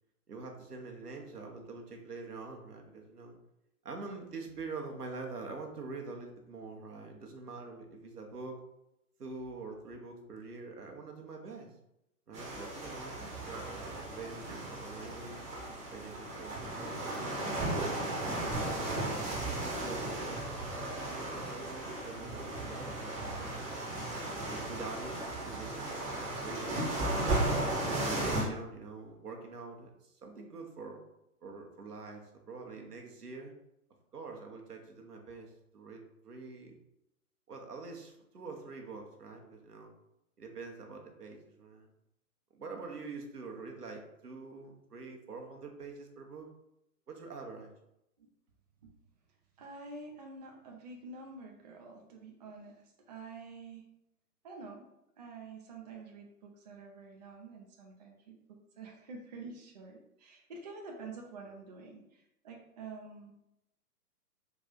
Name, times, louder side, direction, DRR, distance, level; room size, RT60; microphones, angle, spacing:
voice 1, 0.3-3.4 3.8-8.6 9.2-11.7 12.3-13.1 13.5-15.4 15.9-18.3 18.9-23.6 24.3-27.5 28.0-31.0 31.4-33.5 34.1-36.8 37.5-39.9 40.4-41.9 42.5-46.5 47.1-47.7, right 3 dB, 80° right, 2 dB, 1.0 m, -45 dB
sound 1, 12.3-28.4, right 2 dB, 15° right, 0.9 m, -35 dB
voice 2, 49.6-53.9 54.4-54.9 55.2-63.3, right 3 dB, 30° right, 0 dB, 0.4 m, -48 dB
3.9 x 2.5 x 3.8 m, 0.86 s
figure-of-eight pair, 120°, 46 cm